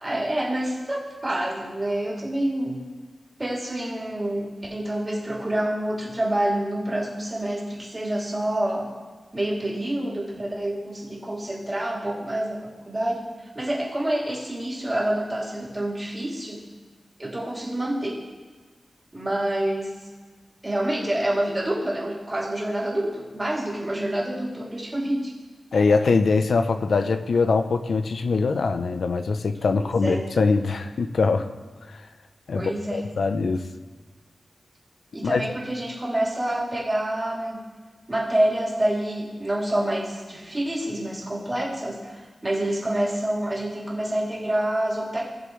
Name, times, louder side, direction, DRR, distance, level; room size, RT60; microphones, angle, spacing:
voice 1, 0.0-2.8 3.4-8.9 9.3-13.3 13.5-16.6 17.2-18.2 19.1-20.1 20.6-25.3 29.8-30.2 32.5-33.0 35.1-37.6 38.1-45.2, right 1 dB, 20° right, -5 dB, 2.9 m, -27 dB
voice 2, 25.7-31.5 31.9-32.0 32.5-33.6 35.2-35.5, left 4 dB, 80° left, 9 dB, 0.7 m, -22 dB
19.5 x 7.0 x 3.2 m, 1.4 s
wide cardioid pair, 120°, 0 cm